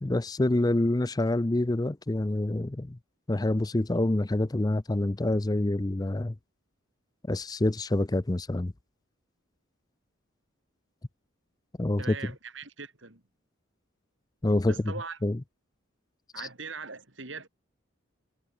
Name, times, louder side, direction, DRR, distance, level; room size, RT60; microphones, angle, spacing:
voice 1, 0.0-3.0 3.3-6.3 7.2-8.7 11.8-12.1 14.4-14.7 15.2-15.4, left 1 dB, 20° left, 0.5 m, -26 dB
voice 2, 12.0-13.2 14.7-15.2 16.3-17.5, right 4 dB, 60° right, 3.7 m, -40 dB
head